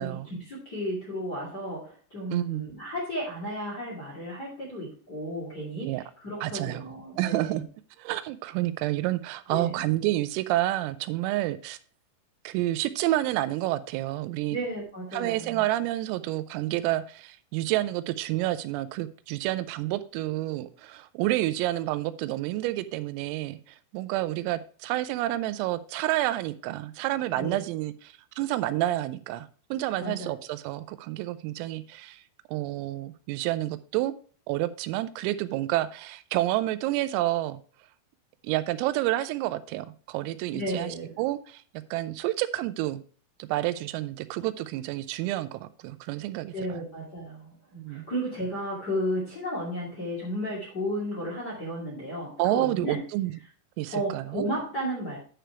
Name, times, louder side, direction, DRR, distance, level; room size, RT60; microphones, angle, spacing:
voice 1, 0.0-7.6 9.5-9.9 14.5-15.6 27.3-27.6 30.0-30.4 40.5-41.1 46.5-53.0 53.9-55.2, equal, 30° left, 2.0 m, -33 dB
voice 2, 2.3-2.6 5.8-6.0 6.4-6.9 7.2-7.6 8.0-11.8 12.4-14.6 15.1-32.2 32.5-34.1 34.5-37.6 38.4-41.6 41.9-43.0 43.4-46.5 47.8-48.1 52.4-53.3 53.8-54.5, right 16 dB, 90° right, 3.3 m, -29 dB
10.0 x 5.0 x 4.4 m
omnidirectional pair, 5.9 m